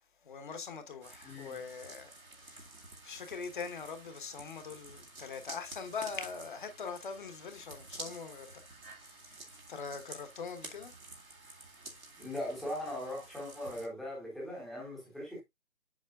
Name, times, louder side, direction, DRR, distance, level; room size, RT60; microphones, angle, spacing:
voice 1, 0.3-2.1 2.5-2.6 3.0-8.5 9.7-10.9, left 5 dB, 35° left, 1.2 m, -42 dB
sound 1, 1.0-13.9, right 2 dB, 85° right, 2.2 m, -51 dB
voice 2, 1.2-1.5 12.2-15.4, left 1 dB, ahead, 0.9 m, -39 dB
7.4 x 6.4 x 2.4 m
figure-of-eight pair, 150°, 41 cm